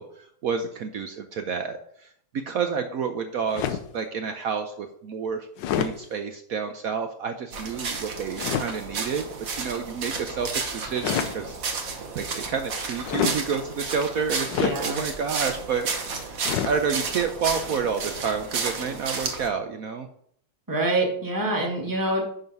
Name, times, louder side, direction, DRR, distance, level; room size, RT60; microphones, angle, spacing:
voice 1, 0.0-2.1 2.5-9.2 9.5-15.9 16.1-20.1, right 6 dB, 65° right, 7 dB, 0.9 m, -30 dB
sound 1, 3.5-3.9 5.6-6.0 8.4-8.7 10.9-11.4 13.0-13.4 14.5-14.8 16.4-16.8, left 9 dB, 75° left, 1.3 m, -27 dB
Footsteps Dry Leaves E, 7.5-19.5, right 4 dB, 50° right, 1.4 m, -32 dB
voice 2, 14.5-15.0 20.7-22.2, right 2 dB, 10° right, -2 dB, 1.8 m, -26 dB
10.0 x 4.0 x 5.4 m, 0.66 s
omnidirectional pair, 2.1 m